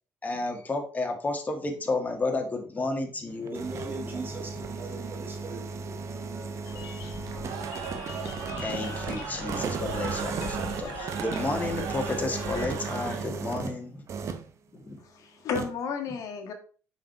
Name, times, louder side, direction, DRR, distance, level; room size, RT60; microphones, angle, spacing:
voice 1, 0.2-3.6 4.0-4.3 8.5-14.3 14.7-15.0, left 2 dB, 25° left, 3 dB, 1.8 m, -32 dB
sound 1, 3.3-13.8 14.1-14.5 15.5-15.7, right 5 dB, 55° right, 0.9 m, -35 dB
voice 2, 3.5-5.7 6.0-7.4, right 3 dB, 35° right, 1 dB, 2.7 m, -41 dB
sound 2, 6.6-12.8, left 7 dB, 90° left, 1.0 m, -42 dB
Cheering / Crowd, 7.2-13.6, right 6 dB, 85° right, 1.4 m, -38 dB
voice 3, 15.0-16.5, left 6 dB, 70° left, 5 dB, 1.5 m, -33 dB
5.7 x 4.8 x 4.6 m, 0.39 s
cardioid pair, 80°, 6 cm